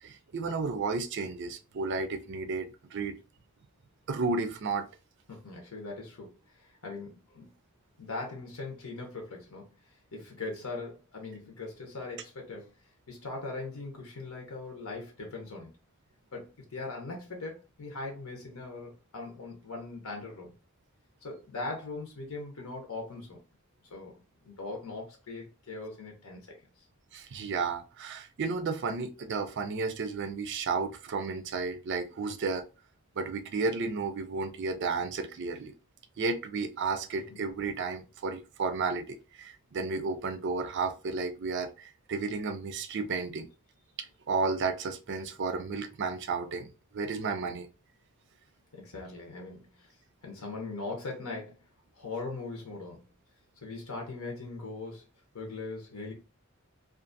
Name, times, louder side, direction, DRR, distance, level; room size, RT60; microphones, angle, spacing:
voice 1, 0.0-3.2 4.1-4.9 27.1-32.7 33.2-35.7 36.2-43.5 44.0-46.7 46.9-47.7, right 4 dB, 55° right, 0.4 m, -32 dB
voice 2, 5.3-7.5 8.0-9.7 10.1-12.7 13.1-15.7 16.3-20.5 21.2-23.4 23.9-24.1 24.4-26.5 37.3-37.4 48.7-49.9 50.2-51.6 51.9-53.0 53.6-55.0 55.3-56.1, left 3 dB, 80° left, 0.8 m, -40 dB
2.5 x 2.4 x 2.6 m
head